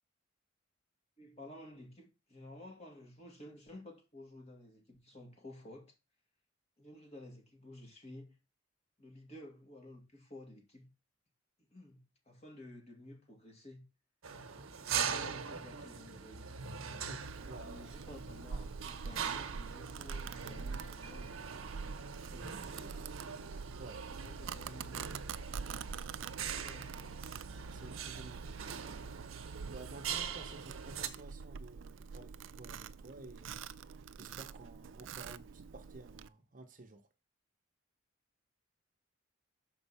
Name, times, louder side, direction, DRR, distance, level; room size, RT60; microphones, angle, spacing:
voice 1, 1.2-5.9 6.8-8.3 9.0-10.9 11.6-13.9 14.7-16.5 17.4-21.5 22.1-23.1 24.2-25.2 26.0-27.5 30.3-30.6, left 1 dB, 30° left, 2.1 m, -53 dB
sound 1, 14.2-31.1, right 7 dB, 90° right, 0.9 m, -42 dB
voice 2, 17.1-17.7 23.8-24.5 27.7-28.8 29.7-33.6 34.2-37.1, right 2 dB, 40° right, 0.8 m, -53 dB
Domestic sounds home sounds, 17.2-36.3, right 5 dB, 65° right, 0.4 m, -46 dB
6.2 x 4.5 x 5.6 m
head